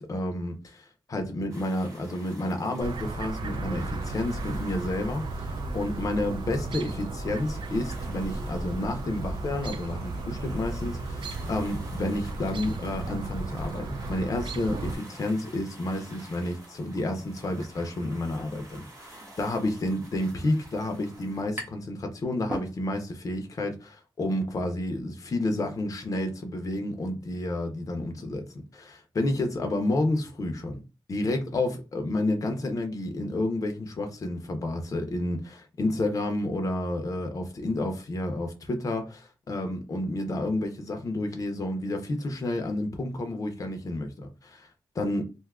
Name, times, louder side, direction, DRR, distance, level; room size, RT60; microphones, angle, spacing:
voice 1, 0.0-28.4 28.7-30.8 31.1-44.7 44.9-45.2, left 1 dB, 40° left, 0.6 m, -30 dB
sound 1, 1.5-21.4, right 1 dB, 35° right, 1.0 m, -50 dB
Chirp tweet, 2.8-14.9, right 2 dB, 70° right, 0.4 m, -34 dB
sound 2, 21.6-22.0 22.3-23.2, right 1 dB, 20° right, 0.7 m, -38 dB
2.6 x 2.3 x 3.5 m
wide cardioid pair, 180°, 9 cm